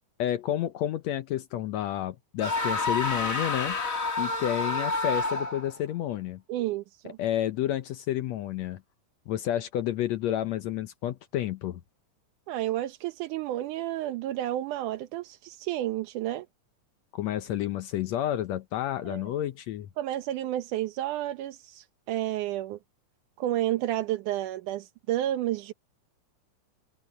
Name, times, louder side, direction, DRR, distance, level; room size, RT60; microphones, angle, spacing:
voice 1, 0.2-3.8 4.2-6.4 7.2-8.8 9.3-11.8 17.1-19.9, left 12 dB, 70° left, 1.8 m, -30 dB
sound 1, 2.4-5.8, left 3 dB, 25° left, 2.6 m, -29 dB
voice 2, 6.5-7.2 12.5-16.5 19.1-19.2 20.0-22.8 23.4-25.7, right 13 dB, 85° right, 2.5 m, -31 dB
omnidirectional pair, 3.5 m